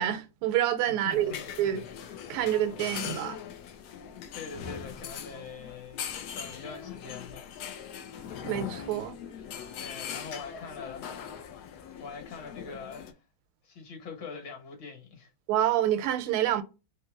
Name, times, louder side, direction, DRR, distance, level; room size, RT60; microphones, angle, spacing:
voice 1, 0.0-1.8 2.3-3.4 8.4-9.2 15.5-16.6, right 11 dB, 85° right, 1.5 m, -27 dB
voice 2, 0.9-1.5 4.3-6.1 6.3-7.5 9.8-11.1 11.5-11.7 12.0-13.2 13.6-15.3, left 5 dB, 60° left, 1.8 m, -43 dB
sound 1, 1.1-13.1, left 8 dB, 90° left, 0.8 m, -41 dB
3.8 x 2.9 x 3.6 m
omnidirectional pair, 2.4 m